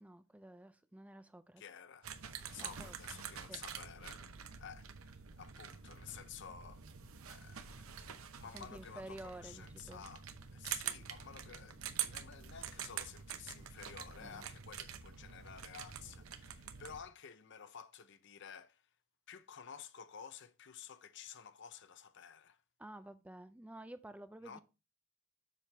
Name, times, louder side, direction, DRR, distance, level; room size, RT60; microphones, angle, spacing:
voice 1, 0.0-1.6 2.6-2.9 3.5-3.6 8.5-10.0 14.2-14.4 22.8-24.6, right 1 dB, 5° right, 0.4 m, -51 dB
voice 2, 1.6-2.1 2.5-4.2 4.6-6.8 7.3-18.8 19.3-22.6 24.4-24.6, left 7 dB, 55° left, 0.6 m, -52 dB
sound 1, 2.0-17.0, right 8 dB, 80° right, 0.8 m, -46 dB
7.4 x 5.7 x 3.3 m
head